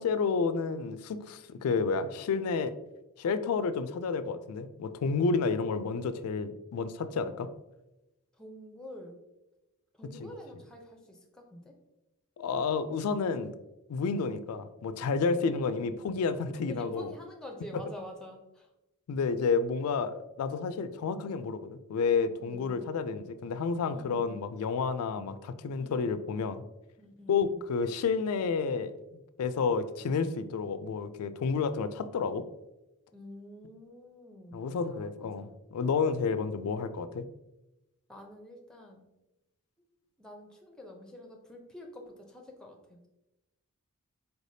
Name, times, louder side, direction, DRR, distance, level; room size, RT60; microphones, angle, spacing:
voice 1, 0.0-2.7 3.2-7.5 10.2-10.3 12.4-13.5 13.9-17.1 17.7-17.8 19.1-26.6 27.3-28.9 29.4-32.4 34.5-37.2, left 5 dB, 80° left, 12 dB, 0.3 m, -30 dB
voice 2, 8.4-9.2 10.0-11.7 16.7-18.7 22.4-22.9 23.9-24.4 25.1-25.3 25.8-26.0 27.0-27.6 33.1-35.5 38.1-39.0 40.2-43.1, left 1 dB, 5° left, 2 dB, 0.5 m, -48 dB
4.3 x 3.3 x 2.7 m, 0.96 s
head